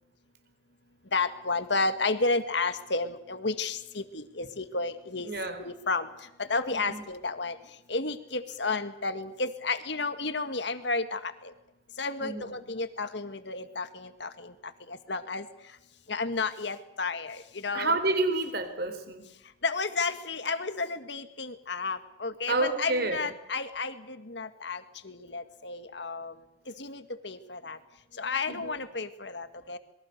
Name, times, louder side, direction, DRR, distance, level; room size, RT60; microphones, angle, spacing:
voice 1, 1.1-5.3 5.6-6.1 6.4-7.6 7.9-11.5 12.0-14.5 14.9-15.5 16.1-18.0 19.6-26.3 26.8-27.8 28.2-29.8, left 3 dB, 60° left, 10 dB, 1.9 m, -32 dB
voice 2, 5.2-5.6 6.7-7.0 12.2-12.5 17.7-19.2 22.5-23.3 28.5-28.8, right 2 dB, 55° right, 9 dB, 3.8 m, -29 dB
27.5 x 22.5 x 6.7 m, 0.91 s
head